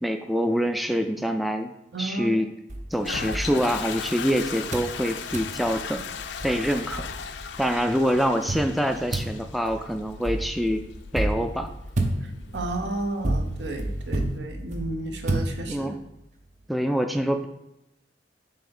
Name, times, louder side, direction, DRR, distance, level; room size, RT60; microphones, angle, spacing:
voice 1, 0.0-1.7 2.0-2.5 2.9-6.0 6.4-7.1 7.6-10.8 11.1-11.7 15.7-15.9 16.7-17.5, equal, ahead, 6 dB, 0.3 m, -25 dB
voice 2, 1.9-2.4 7.7-7.8 12.2-16.0, right 2 dB, 75° right, 5 dB, 0.8 m, -33 dB
sound 1, 2.7-4.3 4.7-5.0 5.3-5.6 6.1-6.2 6.4-7.5 8.5-16.1, right 1 dB, 45° right, 0.7 m, -31 dB
Toilet flush, 2.9-14.4, left 6 dB, 80° left, 0.4 m, -38 dB
7.2 x 2.8 x 5.4 m, 0.87 s
head